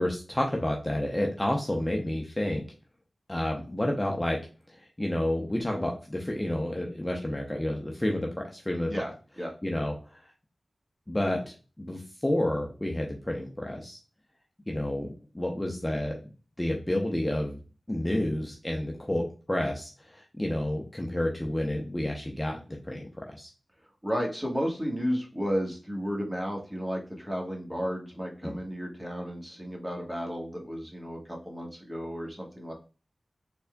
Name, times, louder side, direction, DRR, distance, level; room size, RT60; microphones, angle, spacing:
voice 1, 0.0-2.6 3.3-4.4 4.7-9.1 9.6-10.2 11.1-14.0 14.7-16.2 16.6-17.6 17.9-23.5 28.4-28.6, left 1 dB, 15° left, 0 dB, 0.7 m, -30 dB
voice 2, 8.9-9.5 24.0-31.2 31.4-32.7, equal, 10° right, 0 dB, 1.4 m, -33 dB
4.2 x 3.5 x 2.2 m, 0.34 s
wide cardioid pair, 60°, 0 cm